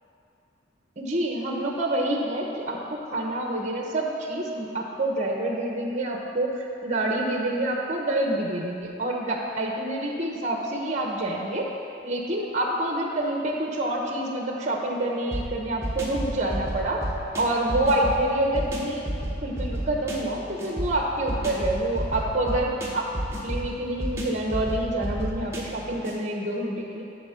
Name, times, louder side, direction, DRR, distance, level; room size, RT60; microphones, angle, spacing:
voice 1, 1.0-11.7 12.0-17.0 17.4-19.0 19.4-23.0 23.4-27.0, right 1 dB, 40° right, 0 dB, 1.0 m, -27 dB
sound 1, 15.3-26.2, right 1 dB, 15° right, 1.1 m, -32 dB
11.0 x 3.7 x 7.0 m, 2.7 s
head